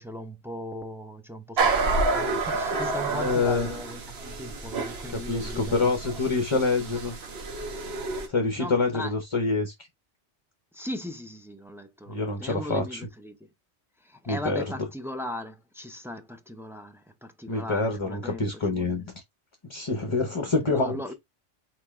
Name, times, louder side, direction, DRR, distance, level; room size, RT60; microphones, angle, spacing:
voice 1, 0.0-6.4 6.8-7.0 8.6-9.1 10.7-13.5 14.0-19.1 20.6-21.1, left 1 dB, 5° right, 0.4 m, -38 dB
sound 1, 1.6-8.3, right 3 dB, 60° right, 1.2 m, -29 dB
voice 2, 3.1-3.7 5.1-7.2 8.3-9.7 12.1-13.0 14.3-14.6 17.5-19.0 19.7-21.0, left 3 dB, 30° left, 0.7 m, -26 dB
4.5 x 3.6 x 3.1 m
omnidirectional pair, 1.2 m